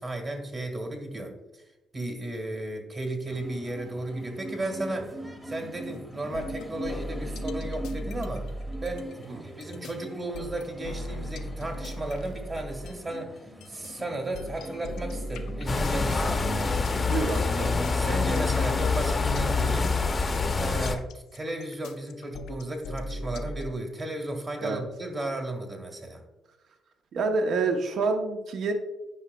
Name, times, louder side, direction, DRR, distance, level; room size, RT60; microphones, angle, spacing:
voice 1, 0.0-1.6 1.9-5.2 5.4-8.5 8.8-16.4 17.9-20.0 20.5-26.2, right 1 dB, 35° right, 3 dB, 1.5 m, -34 dB
sound 1, 3.3-15.7, right 1 dB, 10° right, 0.9 m, -42 dB
sound 2, 6.3-13.1 13.6-23.7, equal, 85° left, 0.5 m, -37 dB
sound 3, 15.7-20.9, left 4 dB, 30° left, 0.6 m, -26 dB
voice 2, 17.0-17.7 24.6-24.8 27.1-28.7, right 4 dB, 65° right, 6 dB, 0.7 m, -27 dB
9.6 x 5.1 x 2.2 m, 1.0 s
cardioid pair, 90°, 0 cm